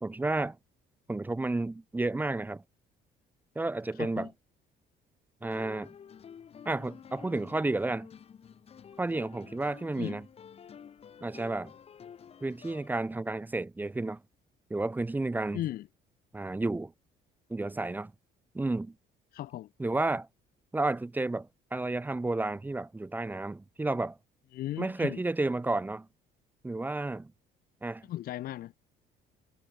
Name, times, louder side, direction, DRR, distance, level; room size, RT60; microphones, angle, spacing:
voice 1, 0.0-0.6 1.1-2.6 3.6-4.3 5.4-5.9 6.7-8.1 9.0-10.3 11.2-11.7 12.4-14.2 14.7-15.6 16.3-16.9 17.5-18.1 18.5-18.9 19.8-20.3 20.7-24.2 24.8-26.1 26.6-27.3 27.8-28.1, right 2 dB, 10° right, 0.5 m, -31 dB
voice 2, 4.0-4.3 10.0-10.2 15.5-15.9 19.3-19.7 24.5-25.2 28.1-28.7, left 14 dB, 60° left, 0.7 m, -36 dB
sound 1, 5.4-12.9, left 7 dB, 35° left, 1.0 m, -50 dB
cardioid pair, 110°, 17 cm